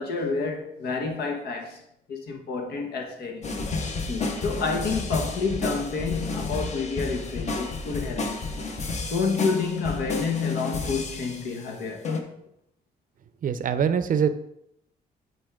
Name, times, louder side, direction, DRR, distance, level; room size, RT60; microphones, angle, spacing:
voice 1, 0.0-1.8 2.1-3.5 4.1-8.3 9.1-12.1, left 4 dB, 80° left, 1.4 m, -29 dB
sound 1, 3.4-11.6 12.0-12.2, left 3 dB, 45° left, 1.0 m, -31 dB
voice 2, 13.4-14.3, right 7 dB, 55° right, 0.6 m, -23 dB
7.8 x 4.6 x 3.6 m
cardioid pair, 95°, 17 cm